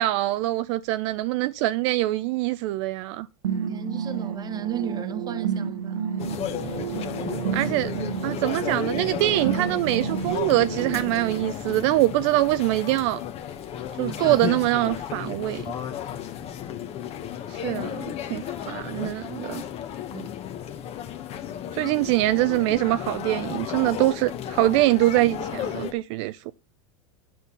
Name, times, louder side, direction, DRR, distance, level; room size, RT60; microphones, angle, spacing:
voice 1, 0.0-3.3 7.5-8.0 8.2-13.2 14.0-15.6 17.5-18.0 18.3-19.6 21.7-26.5, right 17 dB, 60° right, 0.4 m, -24 dB
sound 1, 3.4-11.4, right 7 dB, 90° right, 1.1 m, -31 dB
voice 2, 3.7-6.2 14.1-14.5 15.5-15.7 20.1-20.3, right 7 dB, 25° right, 0.9 m, -34 dB
sound 2, 6.2-25.9, left 9 dB, 35° left, 1.1 m, -34 dB
9.2 x 4.3 x 6.8 m
supercardioid pair, 120°, 17 cm